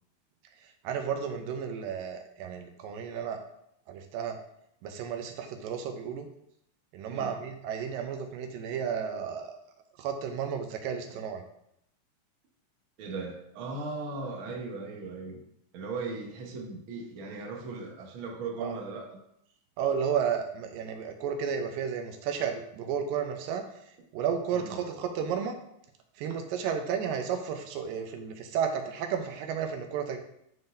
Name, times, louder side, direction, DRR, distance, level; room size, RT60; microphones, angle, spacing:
voice 1, 0.8-3.4 3.9-4.4 4.8-6.3 6.9-9.5 10.0-11.4 18.6-18.7 19.8-23.6 24.1-25.5 26.2-30.2, right 7 dB, 85° right, 5 dB, 2.4 m, -32 dB
voice 2, 13.0-15.4 15.7-19.2 24.5-24.7, right 3 dB, 65° right, 0 dB, 1.2 m, -38 dB
10.5 x 3.8 x 2.6 m, 0.75 s
omnidirectional pair, 3.9 m